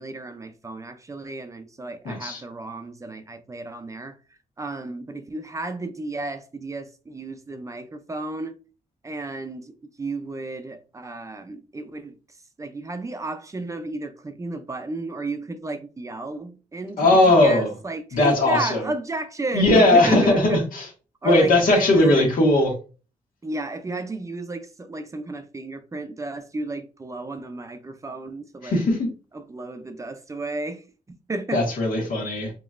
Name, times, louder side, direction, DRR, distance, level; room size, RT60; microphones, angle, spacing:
voice 1, 0.0-4.2 4.6-8.6 9.0-20.6 21.2-22.3 23.4-28.8 29.3-30.8 31.3-31.6, right 2 dB, 20° right, 0.5 m, -33 dB
voice 2, 2.0-2.4 17.0-17.7 18.1-18.9 19.5-20.9 21.2-22.7 28.6-29.1 31.5-32.5, left 2 dB, 85° left, 1.5 m, -18 dB
5.1 x 2.9 x 2.5 m
wide cardioid pair, 140°, 14 cm